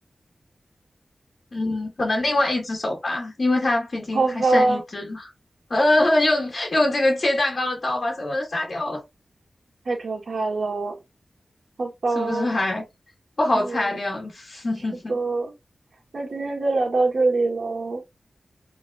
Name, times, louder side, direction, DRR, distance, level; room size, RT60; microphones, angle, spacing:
voice 1, 1.5-5.3 5.7-9.0 12.1-12.9 13.4-15.2, left 2 dB, 50° left, 1.3 m, -24 dB
voice 2, 4.1-4.8 9.8-11.0 11.8-12.5 13.5-13.8 15.1-15.5 16.1-18.0, right 3 dB, 80° right, 1.8 m, -24 dB
5.1 x 3.3 x 2.4 m
wide cardioid pair, 75°, 0 cm